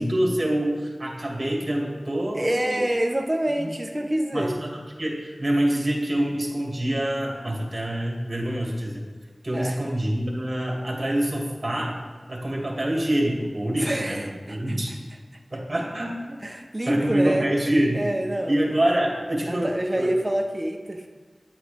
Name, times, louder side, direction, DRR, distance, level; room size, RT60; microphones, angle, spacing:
voice 1, 0.0-2.8 3.5-3.7 4.3-9.1 9.4-12.0 12.3-14.9 15.5-16.4 16.9-18.0 18.5-20.1, right 1 dB, 40° right, -2 dB, 2.1 m, -26 dB
voice 2, 2.4-4.6 9.5-9.8 13.8-14.8 16.4-17.5 17.9-18.6 19.4-21.1, right 1 dB, 20° right, 2 dB, 0.8 m, -27 dB
9.6 x 8.5 x 3.4 m, 1.5 s
wide cardioid pair, 65°, 0 cm